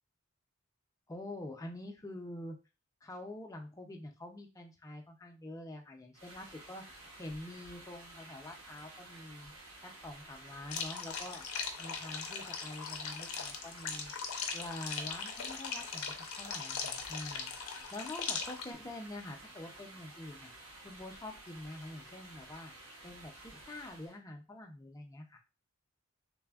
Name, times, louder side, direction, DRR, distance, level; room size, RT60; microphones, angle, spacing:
voice 1, 1.1-2.6 3.0-6.8 7.2-9.5 9.8-11.4 11.8-14.1 14.5-20.5 20.8-22.7 23.0-25.4, left 1 dB, 15° left, 2 dB, 0.4 m, -46 dB
sound 1, 6.1-24.2, right 2 dB, 75° right, 0.9 m, -53 dB
sound 2, 10.7-18.7, left 6 dB, 85° left, 0.5 m, -40 dB
3.3 x 2.0 x 2.2 m, 0.30 s
head